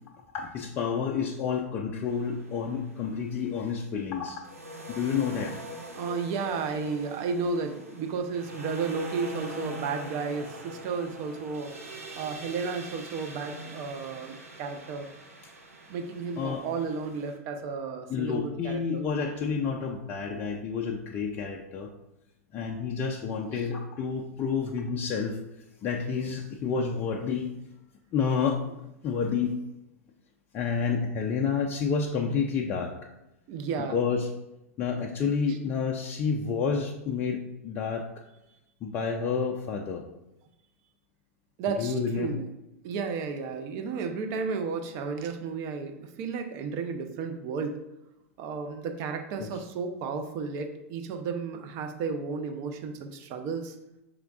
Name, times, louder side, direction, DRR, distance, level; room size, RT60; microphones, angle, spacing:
voice 1, 0.3-4.4 4.9-5.6 15.4-15.5 16.4-16.7 18.1-21.9 22.5-25.4 25.8-27.5 28.1-28.6 29.0-29.6 30.5-32.9 33.9-34.3 34.8-38.1 38.8-40.0 41.8-42.3 49.4-49.5, left 6 dB, 30° left, 1 dB, 0.4 m, -29 dB
sound 1, 2.1-3.5 4.4-17.4, right 1 dB, 85° right, 0.7 m, -43 dB
voice 2, 5.9-11.7 12.1-15.1 15.9-19.0 33.5-34.0 41.6-42.5 42.8-47.8 48.4-53.8, right 5 dB, 40° right, 5 dB, 0.6 m, -33 dB
4.9 x 3.3 x 2.4 m, 0.92 s
figure-of-eight pair, 95°, 8 cm